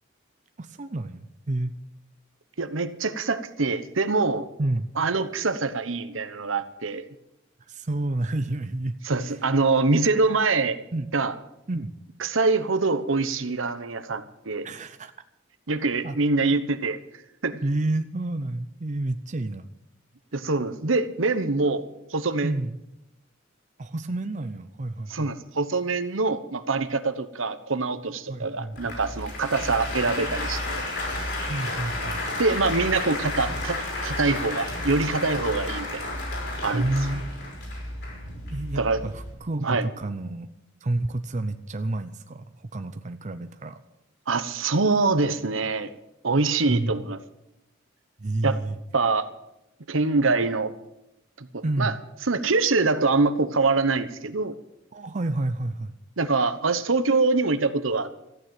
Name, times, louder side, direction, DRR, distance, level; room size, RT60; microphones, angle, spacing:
voice 1, 0.6-1.8 4.6-4.9 7.7-9.0 9.2-9.4 10.9-11.1 11.7-11.9 14.6-15.1 16.0-16.2 16.5-16.6 17.6-19.7 22.4-22.8 23.8-25.3 28.3-29.0 31.5-32.2 36.7-37.2 38.5-40.5 40.8-43.8 46.6-46.9 48.2-48.8 51.6-52.0 54.9-55.9, right 2 dB, 35° right, 9 dB, 0.6 m, -29 dB
voice 2, 2.6-4.5 5.0-7.0 9.0-10.8 11.1-11.3 12.2-14.7 15.7-17.0 17.4-17.6 20.3-21.8 22.1-22.5 25.1-30.8 32.4-33.8 34.0-36.1 36.6-36.9 38.8-39.0 39.6-39.9 44.3-45.9 46.2-47.2 48.4-48.6 48.9-49.3 49.9-50.7 51.4-51.9 52.2-54.5 56.2-58.3, right 3 dB, 75° right, 11 dB, 1.1 m, -24 dB
Applause, 28.7-39.3, left 2 dB, 60° left, 5.4 m, -32 dB
14.0 x 9.3 x 9.0 m, 0.86 s
head